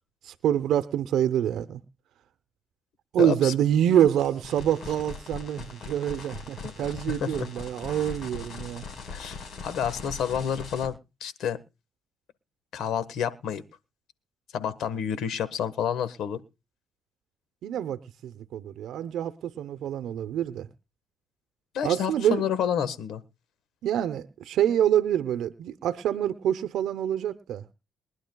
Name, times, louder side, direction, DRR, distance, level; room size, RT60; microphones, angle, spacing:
voice 1, 0.2-1.8 3.1-8.8 17.6-20.7 21.8-22.4 23.8-27.6, right 10 dB, 80° right, 12 dB, 0.7 m, -26 dB
voice 2, 3.2-3.5 6.6-6.7 7.1-7.5 9.1-11.6 12.7-13.6 14.5-16.4 21.7-23.2, left 8 dB, 80° left, 14 dB, 1.4 m, -29 dB
sound 1, 4.1-10.9, left 4 dB, 65° left, 4.7 m, -40 dB
23.0 x 11.0 x 2.3 m, 0.28 s
cardioid pair, 90°, 0 cm